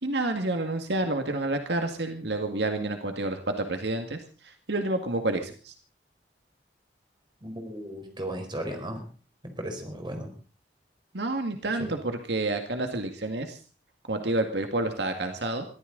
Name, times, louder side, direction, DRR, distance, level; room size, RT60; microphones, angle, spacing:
voice 1, 0.0-5.7 11.1-13.6 14.1-15.7, right 2 dB, 70° right, 5 dB, 2.0 m, -29 dB
voice 2, 7.4-9.0 9.4-10.3 11.8-11.9, right 1 dB, 25° right, 4 dB, 4.4 m, -35 dB
23.0 x 14.5 x 4.0 m, 0.37 s
head